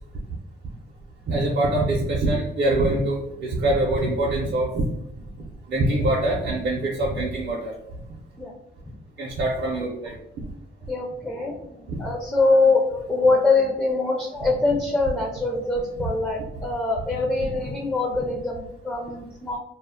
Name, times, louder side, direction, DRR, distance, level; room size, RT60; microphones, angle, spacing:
voice 1, 1.3-4.8 5.7-7.7 9.2-10.1 11.9-12.0, right 2 dB, 60° right, -3 dB, 0.6 m, -24 dB
voice 2, 10.8-19.6, left 3 dB, 10° left, 0 dB, 0.4 m, -23 dB
2.2 x 2.0 x 3.5 m, 0.81 s
cardioid pair, 90°, 20 cm